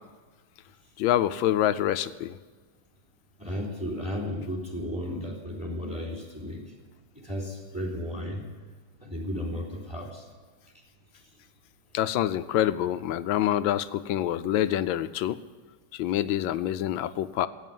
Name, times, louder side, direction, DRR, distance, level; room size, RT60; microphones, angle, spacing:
voice 1, 1.0-2.4 11.9-15.4 15.9-17.5, left 12 dB, 75° left, 13 dB, 1.3 m, -26 dB
voice 2, 3.4-6.6 7.1-8.4 9.0-10.2, equal, 5° right, -1 dB, 3.4 m, -34 dB
16.5 x 8.9 x 9.3 m, 1.4 s
omnidirectional pair, 2.2 m